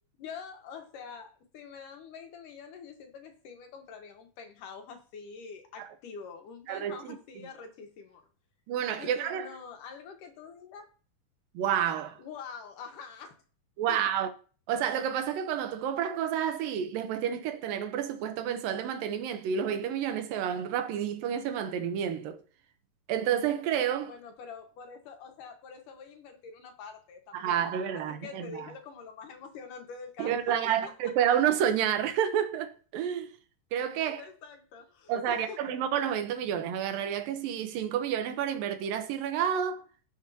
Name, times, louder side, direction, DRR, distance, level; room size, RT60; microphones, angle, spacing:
voice 1, 0.2-8.3 9.0-10.9 12.2-13.4 13.9-14.0 24.0-30.6 30.8-30.9 34.0-35.6, left 5 dB, 70° left, 2.8 m, -45 dB
voice 2, 6.7-7.2 8.7-9.5 11.5-12.2 13.8-14.3 14.7-22.4 23.1-24.1 27.3-28.7 30.2-33.3 33.7-34.2 35.1-39.8, right 9 dB, 80° right, 2.7 m, -30 dB
17.0 x 6.7 x 2.8 m
omnidirectional pair, 4.0 m